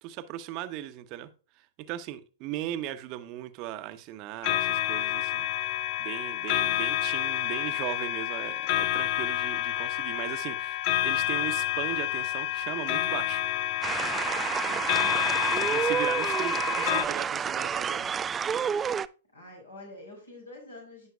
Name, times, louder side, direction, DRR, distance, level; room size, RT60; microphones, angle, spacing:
voice 1, 0.0-1.3 1.6-5.5 6.0-13.4 15.6-18.1, right 12 dB, 40° right, 0.8 m, -38 dB
sound 1, 4.4-17.0, left 14 dB, 45° left, 0.5 m, -29 dB
sound 2, 13.8-19.1, right 7 dB, 20° right, 0.3 m, -29 dB
voice 2, 14.7-15.9 19.3-21.1, left 2 dB, 80° left, 4.9 m, -47 dB
15.0 x 5.6 x 2.3 m
figure-of-eight pair, 100°, 0 cm